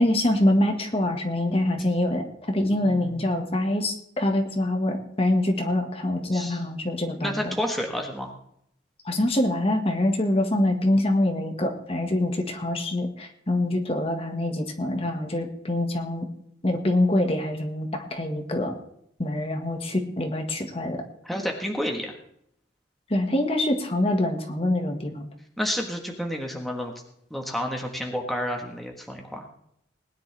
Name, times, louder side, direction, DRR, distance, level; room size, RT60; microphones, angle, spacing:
voice 1, 0.0-7.5 9.0-16.3 16.6-18.8 19.2-21.0 23.1-25.3, left 1 dB, 30° left, 4 dB, 1.7 m, -25 dB
voice 2, 2.7-3.1 6.2-6.6 7.2-8.3 21.2-22.1 25.6-26.9 27.3-29.4, equal, ahead, 1 dB, 1.5 m, -30 dB
20.0 x 10.5 x 3.5 m, 0.71 s
head